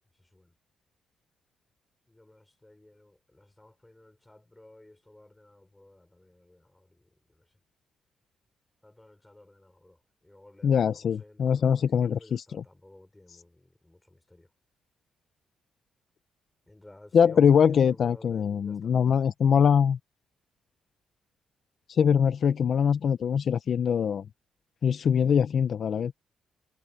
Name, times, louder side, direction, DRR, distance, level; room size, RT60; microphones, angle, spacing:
voice 1, 0.2-0.5 2.1-7.5 8.8-14.5 16.7-18.9, left 1 dB, 10° left, 5.5 m, -54 dB
voice 2, 10.6-12.6 17.1-20.0 21.9-24.3 24.8-26.2, left 7 dB, 50° left, 0.6 m, -23 dB
cardioid pair, 140°, 0 cm